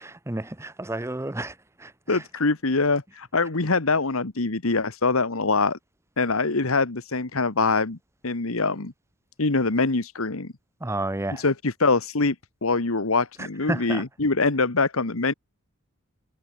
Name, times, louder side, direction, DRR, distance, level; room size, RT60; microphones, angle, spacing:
voice 1, 0.0-2.2 10.8-11.4 13.4-14.0, right 1 dB, 15° right, 0.7 m, -31 dB
voice 2, 2.1-5.8 6.2-8.0 8.2-8.9 9.4-10.5 11.3-12.3 12.6-15.3, left 3 dB, 75° left, 1.5 m, -24 dB
head